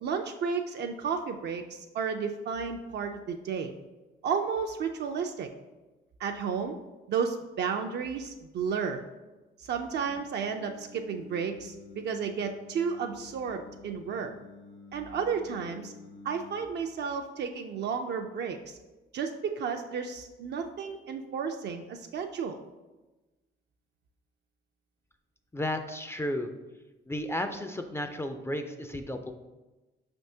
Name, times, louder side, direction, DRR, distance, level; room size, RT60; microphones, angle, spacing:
voice 1, 0.0-3.7 4.2-5.5 6.2-6.8 7.1-9.0 9.6-14.3 14.9-15.9 16.2-18.8 19.1-22.6, right 6 dB, 60° right, 4 dB, 0.4 m, -32 dB
Singing, 10.0-16.6, left 3 dB, 85° left, 1.2 m, -50 dB
voice 2, 25.5-26.5 27.1-29.3, left 1 dB, 15° left, 6 dB, 0.3 m, -33 dB
5.8 x 3.4 x 2.7 m, 1.1 s
cardioid pair, 90°, 20 cm